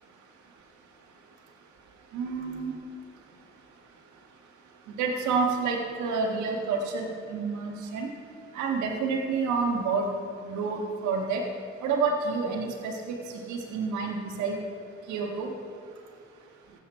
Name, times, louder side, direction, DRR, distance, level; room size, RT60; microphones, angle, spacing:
voice 1, 2.1-2.7 5.0-8.1 8.5-10.1 10.4-11.4 11.8-13.1 13.5-14.6 15.1-15.5, right 4 dB, 80° right, 2 dB, 1.7 m, -29 dB
14.5 x 8.0 x 4.4 m, 2.2 s
supercardioid pair, 55°, 29 cm